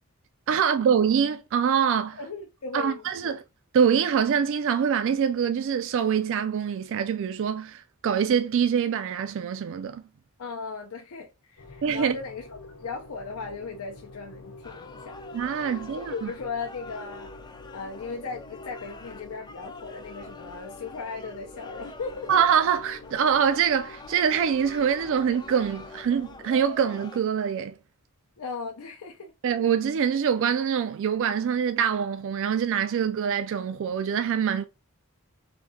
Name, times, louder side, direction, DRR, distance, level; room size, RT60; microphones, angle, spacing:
voice 1, 0.5-2.2 2.7-3.4 3.7-10.0 11.8-12.2 15.3-16.3 22.3-27.8 29.4-34.7, right 7 dB, 60° right, 0.3 m, -24 dB
voice 2, 2.2-3.4 10.4-12.4 12.8-15.2 15.6-15.7 16.1-17.3 17.7-22.3 28.4-29.3, left 4 dB, 70° left, 0.6 m, -37 dB
sound 1, 11.6-27.1, left 2 dB, 90° left, 0.9 m, -47 dB
sound 2, 14.6-27.2, left 3 dB, 20° left, 0.4 m, -46 dB
3.5 x 2.7 x 4.1 m
head